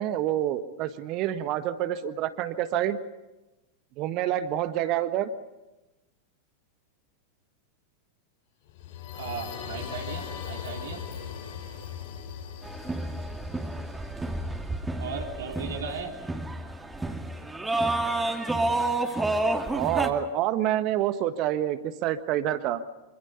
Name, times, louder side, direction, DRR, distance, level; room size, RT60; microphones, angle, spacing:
voice 1, 0.0-3.0 4.0-5.3 19.7-22.8, right 12 dB, 40° right, 12 dB, 1.4 m, -27 dB
sound 1, 8.7-14.4, left 8 dB, 50° left, 7.5 m, -39 dB
voice 2, 9.2-11.0 15.0-16.2, right 5 dB, 65° right, 0 dB, 3.2 m, -37 dB
sound 2, 12.6-20.1, right 2 dB, 10° right, 2.5 m, -30 dB
26.5 x 25.5 x 5.7 m, 1.0 s
figure-of-eight pair, 90°, 0 cm